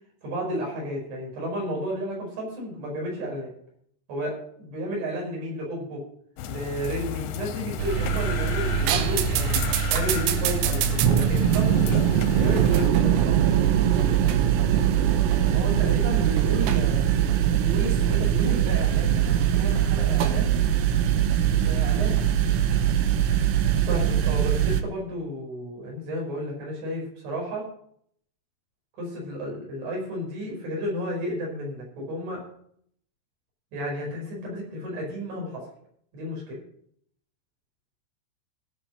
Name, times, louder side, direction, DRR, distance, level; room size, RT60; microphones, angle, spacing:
voice 1, 0.2-3.5 4.1-6.0 6.5-9.6 9.9-12.0 12.4-13.4 23.9-27.7 29.0-32.4 33.7-35.6 36.1-36.6, equal, 65° right, -2 dB, 7.4 m, -32 dB
sound 1, 6.4-12.9, left 8 dB, 80° left, 2.5 m, -33 dB
sound 2, 7.8-24.8, right 10 dB, 90° right, 3.3 m, -22 dB
voice 2, 15.5-17.1 17.6-20.6 21.4-22.2, right 2 dB, 40° right, -2 dB, 3.9 m, -33 dB
16.5 x 6.4 x 6.5 m, 0.66 s
omnidirectional pair, 5.6 m